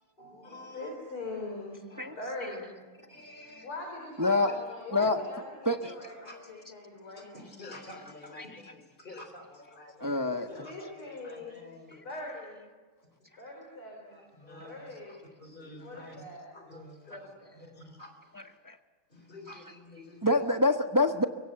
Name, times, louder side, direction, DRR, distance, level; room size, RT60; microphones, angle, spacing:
voice 1, 0.2-0.9 1.9-2.2 3.1-3.7 4.2-4.5 5.0-5.1 5.8-5.9 6.2-6.6 7.0-10.2 10.5-12.2 13.2-13.3 13.8-16.2 16.5-18.6 19.1-20.4, left 2 dB, 20° left, 6 dB, 3.9 m, -49 dB
voice 2, 0.7-1.8 2.2-2.8 3.6-7.4 10.6-11.6 12.0-12.7 13.4-14.2 14.6-15.2 15.8-16.5 17.1-17.5, left 2 dB, 85° left, 1 dB, 5.2 m, -42 dB
voice 3, 2.0-2.5 4.2-4.6 4.9-5.2 5.6-5.9 8.0-8.7 9.7-10.7 11.9-12.0 18.3-18.8 20.2-21.2, left 2 dB, 15° right, 5 dB, 0.6 m, -28 dB
24.0 x 23.5 x 7.9 m, 1.4 s
omnidirectional pair, 2.3 m